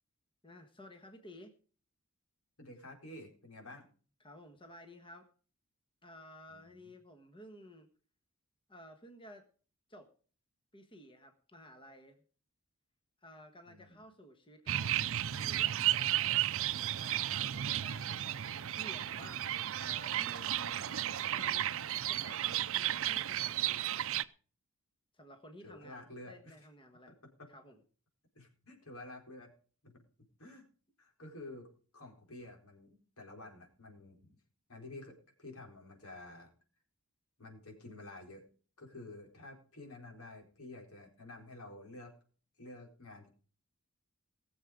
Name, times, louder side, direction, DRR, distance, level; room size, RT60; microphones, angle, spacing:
voice 1, 0.4-1.5 4.2-5.3 6.0-7.9 8.7-9.5 9.9-10.1 10.7-12.2 13.2-16.5 17.0-21.7 22.0-24.1 25.1-27.1 27.5-27.8, equal, 25° left, 6 dB, 1.4 m, -54 dB
voice 2, 2.6-3.8 6.5-6.9 13.7-14.0 25.6-26.5 27.4-27.5 28.3-29.5 29.8-29.9 30.4-30.6 31.0-34.4 34.7-36.5 37.4-38.4 38.8-42.1 42.6-43.3, left 2 dB, 80° left, 2 dB, 4.3 m, -50 dB
sound 1, 14.7-24.2, right 12 dB, 65° right, 0.6 m, -33 dB
20.0 x 7.4 x 5.0 m, 0.41 s
head